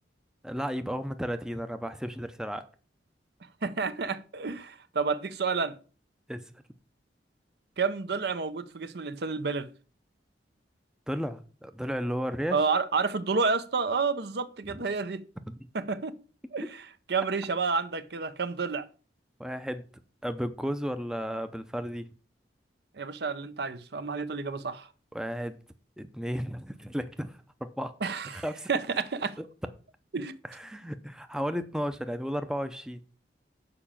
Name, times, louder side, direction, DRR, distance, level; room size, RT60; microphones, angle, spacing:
voice 1, 0.4-2.7 6.3-6.4 11.1-12.7 14.7-14.8 15.5-15.6 19.4-19.8 20.2-22.1 25.1-25.6 26.0-27.9 28.3-28.7 29.4-29.5 30.4-33.0, equal, 5° right, 0.6 m, -34 dB
voice 2, 3.6-5.8 7.8-9.7 12.5-15.2 15.7-16.1 16.5-16.7 17.1-18.8 22.9-24.9 28.0-28.4 28.7-29.3 30.1-30.4, right 4 dB, 60° right, 0.7 m, -30 dB
6.9 x 5.0 x 7.1 m
head